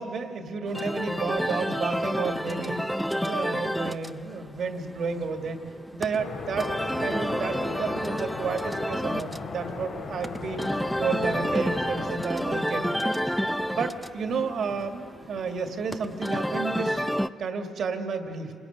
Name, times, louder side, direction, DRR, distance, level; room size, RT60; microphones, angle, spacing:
voice 1, 0.0-5.6 5.9-6.7 7.0-10.7 11.0-17.0 17.4-18.5, right 5 dB, 60° right, 5 dB, 2.1 m, -31 dB
sound 1, 0.7-17.3, equal, ahead, 0.6 m, -30 dB
sound 2, 6.2-12.1, left 4 dB, 85° left, 4.3 m, -37 dB
27.0 x 18.5 x 9.3 m, 2.5 s
cardioid pair, 90°, 0 cm